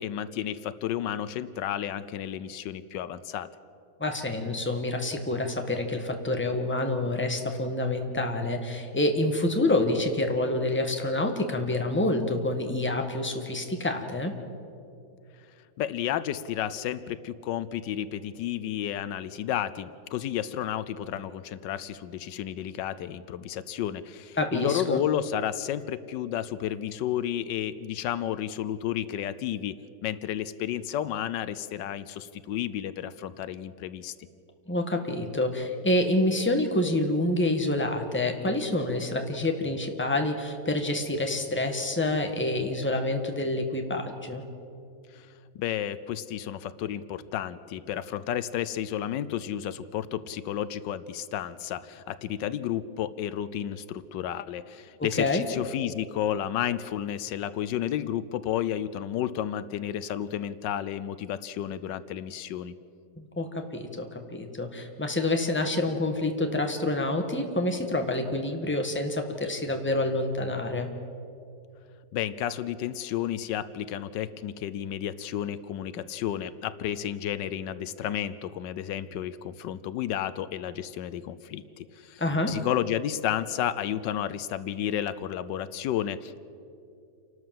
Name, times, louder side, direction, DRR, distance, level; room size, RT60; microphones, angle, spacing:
voice 1, 0.0-3.5 15.8-29.7 30.0-34.1 45.1-45.3 45.5-62.7 72.1-82.2 82.5-86.4, left 10 dB, 80° left, 15 dB, 1.3 m, -32 dB
voice 2, 4.0-14.3 24.4-25.0 34.7-44.4 55.0-55.5 63.2-63.5 63.7-70.9 82.2-82.5, left 2 dB, 5° left, 4 dB, 1.4 m, -27 dB
29.0 x 12.5 x 7.6 m, 2.6 s
omnidirectional pair, 1.9 m